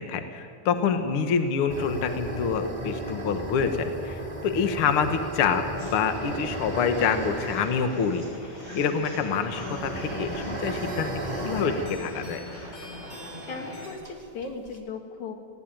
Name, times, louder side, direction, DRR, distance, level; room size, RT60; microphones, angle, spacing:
voice 1, 0.0-8.2 8.7-11.1 11.4-12.4, left 6 dB, 55° left, 7 dB, 1.8 m, -26 dB
sound 1, 1.7-13.1 13.4-13.5 14.0-14.8, right 1 dB, 15° right, 2.1 m, -35 dB
sound 2, 5.8-13.9, left 1 dB, 35° left, 7.5 m, -40 dB
voice 2, 13.5-15.3, left 4 dB, 80° left, 3 dB, 3.5 m, -37 dB
20.5 x 16.5 x 9.2 m, 2.4 s
omnidirectional pair, 3.4 m